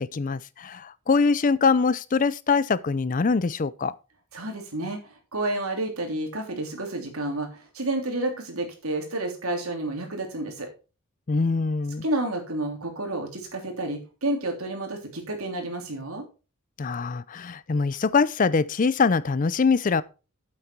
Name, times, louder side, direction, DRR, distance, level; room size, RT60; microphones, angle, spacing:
voice 1, 0.0-4.0 11.3-12.0 16.8-20.0, left 4 dB, 40° left, 0.4 m, -23 dB
voice 2, 4.3-10.7 12.0-16.2, right 1 dB, 85° right, 3.2 m, -30 dB
8.8 x 8.2 x 4.4 m
head